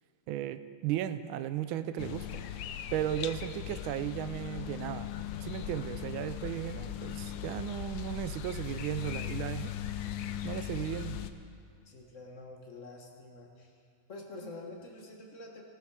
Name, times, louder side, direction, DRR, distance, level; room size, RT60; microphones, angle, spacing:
voice 1, 0.3-2.3 2.9-5.1 5.4-9.7 10.4-11.2, right 11 dB, 85° right, 12 dB, 1.4 m, -35 dB
sound 1, 2.0-11.3, left 11 dB, 75° left, 1.3 m, -39 dB
voice 2, 11.8-13.8 14.1-15.6, left 2 dB, 40° left, 1 dB, 1.6 m, -47 dB
16.0 x 12.5 x 4.8 m, 2.3 s
omnidirectional pair, 2.2 m